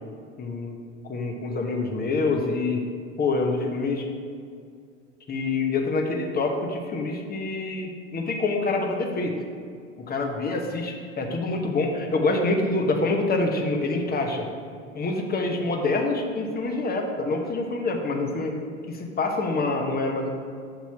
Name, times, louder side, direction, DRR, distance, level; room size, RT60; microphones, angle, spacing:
voice 1, 0.4-0.8 1.0-2.8 3.2-4.1 5.3-9.4 10.0-14.5 14.9-18.6 18.9-20.3, left 3 dB, 25° left, 2 dB, 1.0 m, -26 dB
7.1 x 2.9 x 5.6 m, 2.2 s
hypercardioid pair, 70°, 36 cm